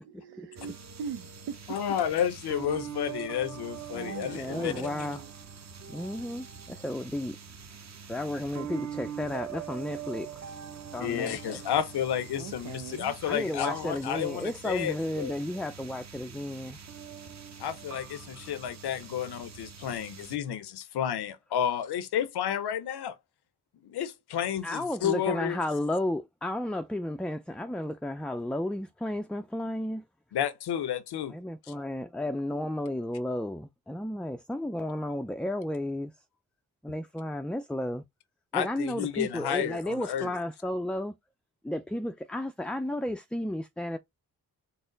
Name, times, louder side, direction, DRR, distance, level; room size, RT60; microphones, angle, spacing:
voice 1, 0.0-2.0 3.9-5.3 12.4-13.1, right 7 dB, 80° right, 0.6 m, -41 dB
sound 1, 0.6-20.4, right 8 dB, 45° right, 0.9 m, -43 dB
voice 2, 1.7-4.7 11.0-15.3 17.6-23.2 23.8-25.6 30.3-31.3 38.5-40.3, left 9 dB, 80° left, 0.7 m, -31 dB
voice 3, 4.3-5.2 5.9-7.4 8.1-10.6 10.9-11.6 13.2-16.8 24.6-30.0 31.3-36.1 36.8-38.0 38.5-41.1 41.6-44.0, left 1 dB, 5° left, 0.3 m, -33 dB
4.1 x 2.0 x 3.8 m
cardioid pair, 65°, 39 cm